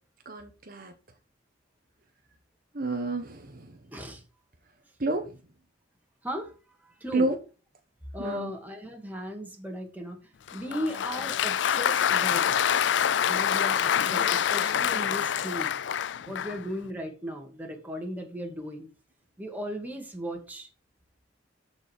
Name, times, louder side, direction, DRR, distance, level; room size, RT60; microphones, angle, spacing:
voice 1, 0.3-0.9 2.7-3.6 5.0-5.2 7.1-7.3 8.2-8.5, right 2 dB, 50° right, 1.3 m, -29 dB
voice 2, 3.9-4.2 6.2-6.5 6.8-7.3 8.1-12.9 13.2-15.7 16.3-18.9 19.4-20.7, equal, 10° right, 2.3 m, -37 dB
Applause, 10.5-16.7, left 9 dB, 70° left, 0.4 m, -26 dB
13.5 x 5.3 x 4.6 m
head